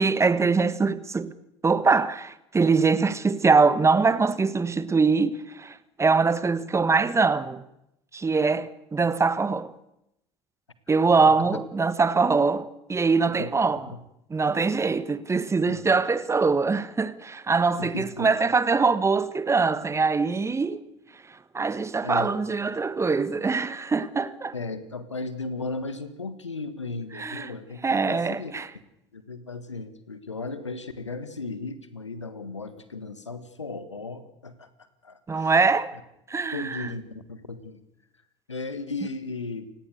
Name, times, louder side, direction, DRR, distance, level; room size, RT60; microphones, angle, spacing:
voice 1, 0.0-1.3 1.6-7.6 8.1-9.7 10.9-13.9 14.3-20.8 21.5-24.5 27.1-27.5 27.8-28.7 35.3-35.9 36.3-36.9, right 4 dB, 20° right, 1.4 m, -23 dB
voice 2, 17.8-18.3 22.0-22.4 24.5-28.5 29.1-34.7 35.0-35.5 36.5-37.0 37.3-37.8 38.5-39.7, left 3 dB, 85° left, 1.7 m, -35 dB
29.0 x 17.0 x 6.5 m
figure-of-eight pair, 65°, 15 cm